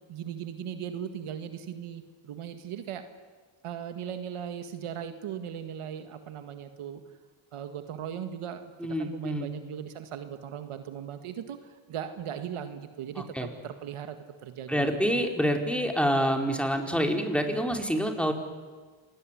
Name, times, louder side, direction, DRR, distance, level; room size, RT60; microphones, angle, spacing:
voice 1, 0.1-3.0 3.6-7.0 7.5-8.7 9.0-14.2 14.4-15.2, right 9 dB, 85° right, 8 dB, 2.0 m, -38 dB
voice 2, 8.8-9.5 13.2-13.5 14.7-18.3, equal, ahead, 4 dB, 4.6 m, -27 dB
27.0 x 19.5 x 10.0 m, 1.4 s
cardioid pair, 60°, 50 cm